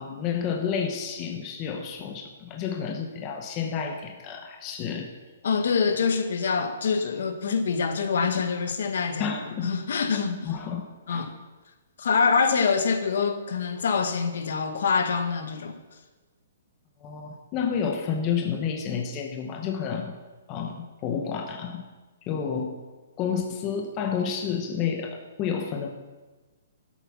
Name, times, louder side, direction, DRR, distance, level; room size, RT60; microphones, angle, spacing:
voice 1, 0.0-5.1 9.2-9.7 10.4-11.3 17.0-20.2 20.5-21.8 22.3-22.8 23.2-25.9, left 7 dB, 20° left, 4 dB, 0.8 m, -30 dB
voice 2, 5.4-10.5 11.1-11.3 12.0-15.8, left 5 dB, 60° left, 8 dB, 1.3 m, -25 dB
11.5 x 8.3 x 6.1 m, 1.3 s
hypercardioid pair, 175°, 0 cm